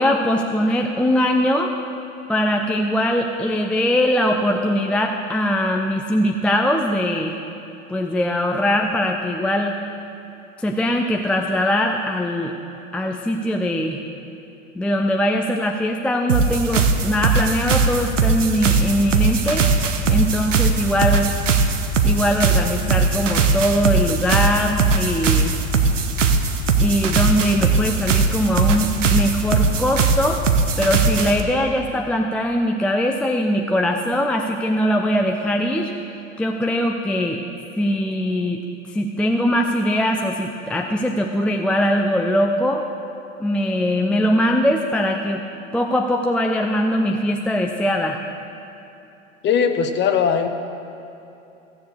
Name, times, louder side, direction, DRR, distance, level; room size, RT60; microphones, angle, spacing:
voice 1, 0.0-1.7 2.3-7.4 7.9-9.8 10.6-12.5 12.9-14.0 14.8-21.3 22.0-25.6 26.8-30.4 30.8-37.4 37.8-42.8 43.4-45.4 45.7-48.2, equal, 5° left, 1 dB, 0.4 m, -21 dB
sound 1, 16.3-31.4, right 4 dB, 75° right, 1.0 m, -19 dB
voice 2, 49.4-50.5, left 7 dB, 30° left, 7 dB, 1.0 m, -19 dB
15.5 x 7.2 x 6.6 m, 2.9 s
figure-of-eight pair, 80°, 38 cm